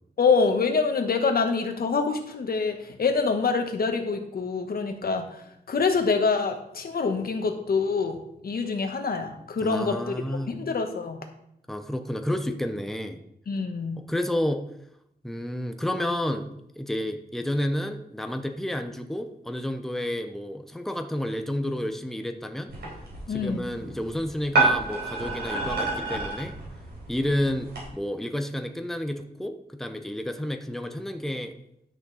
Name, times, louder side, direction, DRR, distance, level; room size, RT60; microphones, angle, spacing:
voice 1, 0.2-10.2 10.5-11.2 13.5-14.0 23.3-23.7, left 4 dB, 65° left, 5 dB, 1.3 m, -26 dB
voice 2, 9.6-10.5 11.7-13.2 14.0-14.7 15.2-22.7 23.3-26.6 27.1-31.5, left 1 dB, ahead, 6 dB, 0.7 m, -30 dB
sound 1, 22.7-27.8, right 2 dB, 85° right, 4.0 m, -29 dB
11.0 x 6.5 x 4.1 m, 0.76 s
wide cardioid pair, 125°, 17 cm